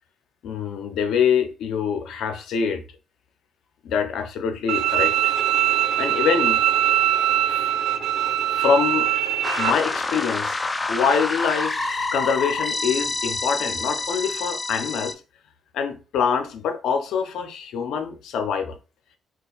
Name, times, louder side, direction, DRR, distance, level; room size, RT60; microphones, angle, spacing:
voice 1, 0.4-2.8 3.8-5.3 6.0-6.6 7.5-7.7 8.5-9.1 9.6-10.6 10.9-15.2 15.7-18.8, left 6 dB, 80° left, 0.5 m, -25 dB
Bowed string instrument, 4.7-9.7, right 11 dB, 70° right, 0.3 m, -22 dB
sound 1, 9.4-15.1, left 3 dB, 20° left, 0.3 m, -27 dB
2.4 x 2.2 x 3.8 m
cardioid pair, 90°, 0 cm